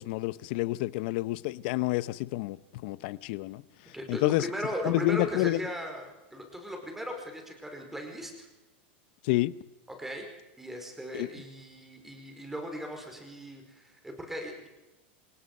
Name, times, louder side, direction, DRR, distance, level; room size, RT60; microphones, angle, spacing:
voice 1, 0.0-3.6 4.1-4.5 4.8-5.6 9.2-9.5 11.1-11.3, left 19 dB, 60° left, 0.8 m, -29 dB
voice 2, 3.9-8.5 10.0-10.3 10.6-14.7, equal, 5° right, 4.7 m, -38 dB
27.5 x 18.0 x 5.5 m
supercardioid pair, 140°, 6 cm